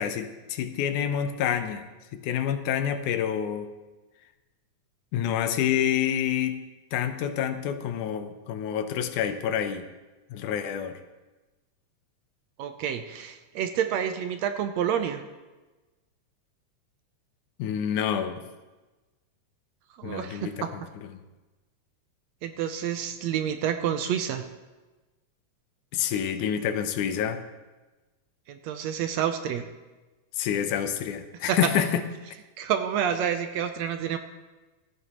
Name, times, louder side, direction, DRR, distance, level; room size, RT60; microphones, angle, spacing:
voice 1, 0.0-1.9 2.1-3.7 5.1-6.6 6.9-9.9 10.3-11.0 17.6-18.4 20.0-20.7 25.9-27.4 30.3-32.0, left 9 dB, 90° left, 9 dB, 2.3 m, -28 dB
voice 2, 12.6-15.2 20.0-20.7 22.4-24.4 28.5-29.7 31.5-31.7 32.6-34.2, right 9 dB, 75° right, 8 dB, 1.8 m, -28 dB
16.5 x 13.5 x 3.0 m, 1.2 s
omnidirectional pair, 3.4 m